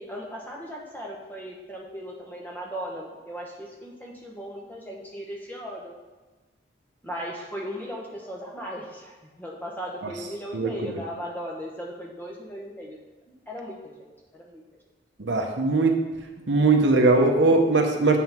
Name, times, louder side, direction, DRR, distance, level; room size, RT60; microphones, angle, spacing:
voice 1, 0.0-5.9 7.0-13.0 13.5-14.1 14.3-14.6 15.5-15.6, equal, 10° left, -2 dB, 1.1 m, -37 dB
voice 2, 10.5-11.0 15.2-16.0 16.5-18.2, right 3 dB, 70° right, 3 dB, 0.8 m, -20 dB
7.5 x 4.1 x 6.0 m, 1.2 s
head